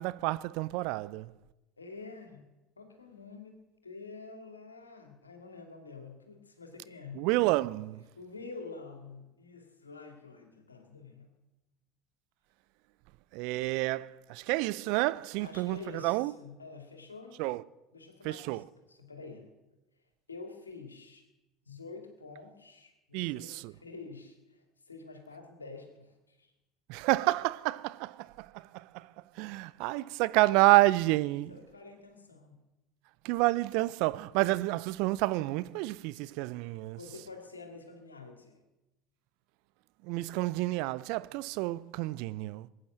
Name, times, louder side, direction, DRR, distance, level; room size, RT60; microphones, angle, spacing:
voice 1, 0.0-1.3 7.2-8.0 13.3-16.3 17.4-17.6 18.2-18.6 23.1-23.7 26.9-29.1 29.4-31.5 33.2-37.0 40.0-42.7, right 19 dB, 60° right, 0.6 m, -29 dB
voice 2, 1.8-7.3 8.2-11.3 15.4-17.4 17.9-19.5 20.3-21.2 21.7-26.5 31.5-32.6 37.0-38.6, left 3 dB, 90° left, 2.4 m, -48 dB
20.5 x 9.4 x 7.5 m
figure-of-eight pair, 70°, 0 cm